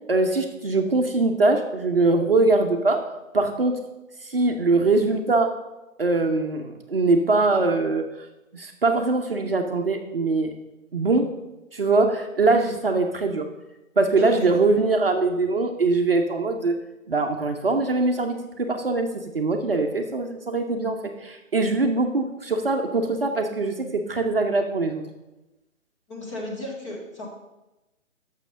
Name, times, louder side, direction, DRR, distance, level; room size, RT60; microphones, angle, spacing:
voice 1, 0.1-3.0 3.3-3.8 4.2-5.5 6.0-8.0 8.5-10.5 10.9-11.3 11.7-13.5 14.0-16.8 17.1-25.0, right 3 dB, 45° right, 4 dB, 0.8 m, -22 dB
voice 2, 14.2-14.5 26.1-27.3, left 1 dB, 25° left, -2 dB, 1.7 m, -34 dB
6.6 x 6.1 x 6.5 m, 1.0 s
figure-of-eight pair, 150°, 40 cm